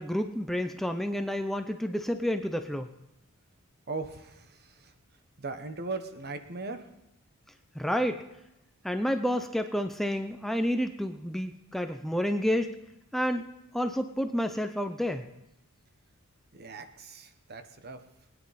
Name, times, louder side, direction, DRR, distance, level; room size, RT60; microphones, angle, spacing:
voice 1, 0.0-2.9 7.8-8.2 8.8-12.7 13.1-13.5 13.7-15.2, equal, ahead, 6 dB, 0.5 m, -29 dB
voice 2, 3.9-4.5 5.4-6.8 16.5-18.0, right 3 dB, 45° right, 9 dB, 1.0 m, -38 dB
20.5 x 9.9 x 4.1 m, 0.90 s
head